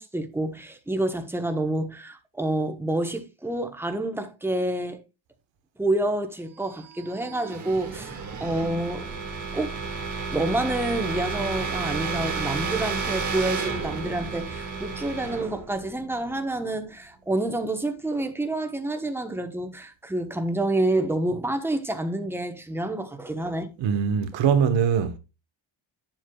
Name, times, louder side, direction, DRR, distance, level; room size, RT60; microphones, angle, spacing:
voice 1, 0.0-5.0 5.8-9.1 9.5-9.8 10.3-23.7, right 1 dB, 5° right, 1.0 m, -28 dB
sound 1, 6.8-16.6, right 5 dB, 35° right, 1.9 m, -32 dB
voice 2, 23.8-25.2, right 7 dB, 65° right, 1.4 m, -22 dB
9.5 x 7.6 x 2.3 m
cardioid pair, 125°, 48 cm